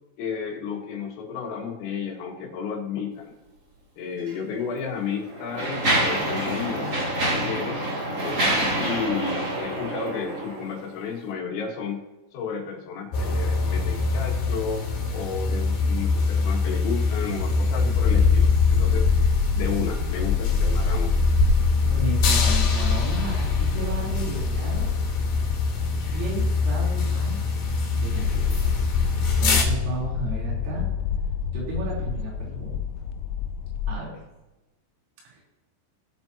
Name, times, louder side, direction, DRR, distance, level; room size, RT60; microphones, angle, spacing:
voice 1, 0.2-3.3 4.0-7.0 7.3-12.0 12.3-14.8 15.1-19.1 19.5-21.2, left 6 dB, 70° left, 1 dB, 3.8 m, -32 dB
Mechanisms, 4.2-4.3 5.1-10.8, right 1 dB, 30° right, 1.9 m, -26 dB
sound 1, 13.1-29.6, left 3 dB, 50° left, 4.1 m, -24 dB
sound 2, 18.0-33.9, left 7 dB, 90° left, 2.6 m, -27 dB
voice 2, 21.8-24.9 26.1-27.5 27.9-30.8 31.5-32.7 33.9-34.1 35.3-35.4, right 3 dB, 85° right, -5 dB, 6.2 m, -34 dB
18.5 x 7.8 x 2.8 m, 1.0 s
omnidirectional pair, 5.7 m